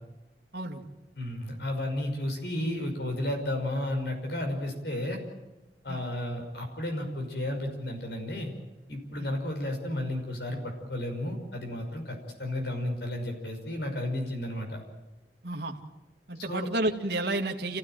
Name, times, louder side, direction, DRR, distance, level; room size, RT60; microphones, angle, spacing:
voice 1, 0.5-0.9 5.9-6.1 9.2-9.3 15.4-15.8 16.3-17.8, right 2 dB, 65° right, 2 dB, 2.1 m, -31 dB
voice 2, 1.2-5.2 5.8-8.5 8.9-14.8 16.5-16.7, left 1 dB, 65° left, 4 dB, 5.8 m, -33 dB
28.0 x 16.0 x 9.2 m, 1.0 s
head